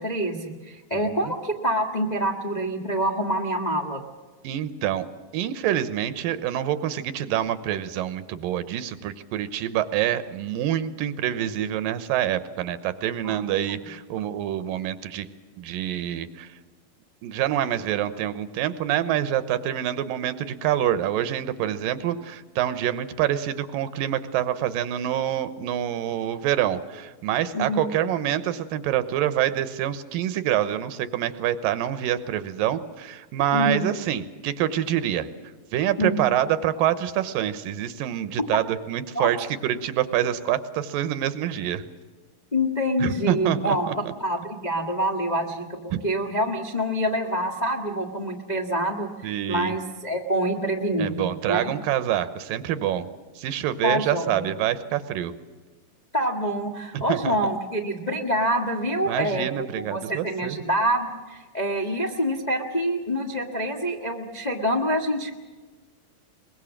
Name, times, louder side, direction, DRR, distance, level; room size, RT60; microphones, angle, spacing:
voice 1, 0.0-4.0 13.2-13.4 27.5-27.8 33.5-33.9 36.0-36.2 38.4-38.5 39.1-39.3 42.5-43.8 44.2-51.7 53.8-54.5 56.1-65.4, equal, 55° left, 2 dB, 0.4 m, -26 dB
voice 2, 0.9-1.3 4.4-5.1 5.3-15.3 15.6-16.5 17.2-35.3 35.7-41.9 43.0-44.1 45.9-46.0 49.2-49.7 51.0-53.1 53.4-55.3 56.9-57.4 59.1-60.6, right 11 dB, 80° right, 13 dB, 2.7 m, -26 dB
23.0 x 21.0 x 7.4 m, 1.3 s
omnidirectional pair, 4.0 m